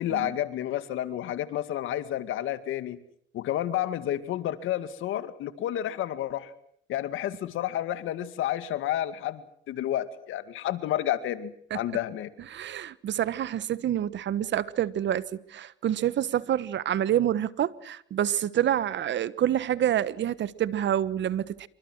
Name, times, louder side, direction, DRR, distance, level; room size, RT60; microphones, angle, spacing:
voice 1, 0.0-3.0 3.3-6.5 6.9-12.3, left 12 dB, 85° left, 2.1 m, -30 dB
voice 2, 12.5-21.7, right 11 dB, 65° right, 1.4 m, -27 dB
27.5 x 24.5 x 6.3 m
cardioid pair, 90°, 20 cm